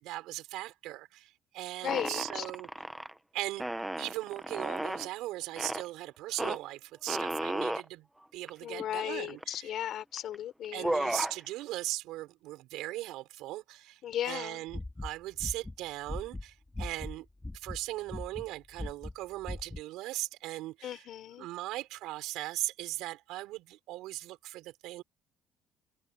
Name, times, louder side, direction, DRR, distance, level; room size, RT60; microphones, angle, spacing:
voice 1, 0.0-2.7 3.3-3.7 4.0-8.1 8.3-9.7 10.7-17.2 17.5-21.1 21.4-25.0, right 17 dB, 85° right, 6.1 m, -39 dB
voice 2, 1.8-2.4 8.6-10.9 14.0-14.7 20.8-21.5, left 11 dB, 65° left, 4.4 m, -36 dB
sound 1, 1.9-3.1 3.6-5.1 5.6-5.9 6.4-6.6 7.1-7.8 8.5-8.6 8.8-9.5 10.2-10.3 10.6-11.4, right 1 dB, 5° right, 1.1 m, -34 dB
sound 2, 14.7-17.2 17.4-17.8 18.1-18.5 18.7-19.1 19.4-19.8, left 2 dB, 15° left, 3.8 m, -39 dB
cardioid pair, 95°, 0 cm